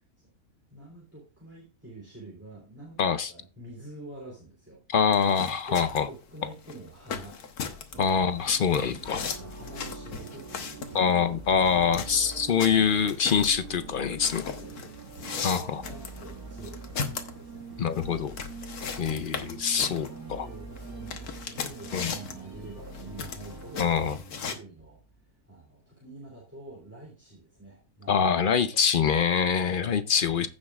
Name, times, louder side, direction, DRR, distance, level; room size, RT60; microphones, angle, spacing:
voice 1, 0.7-4.8 5.7-8.0 9.2-11.9 14.5-16.8 17.4-17.7 18.6-18.7 19.7-25.0 25.5-28.7 29.4-30.3, right 2 dB, 10° right, 3.1 m, -47 dB
voice 2, 3.0-3.3 4.9-6.1 8.0-9.2 10.9-14.4 15.4-15.8 17.8-18.3 19.0-20.5 21.9-22.1 23.8-24.2 28.1-30.5, left 7 dB, 65° left, 0.5 m, -24 dB
sound 1, 5.1-24.6, left 6 dB, 90° left, 1.6 m, -38 dB
sound 2, 7.9-25.2, left 1 dB, 25° left, 3.3 m, -49 dB
sound 3, 7.9-23.9, right 6 dB, 80° right, 1.9 m, -45 dB
15.5 x 6.4 x 2.4 m
omnidirectional pair, 1.6 m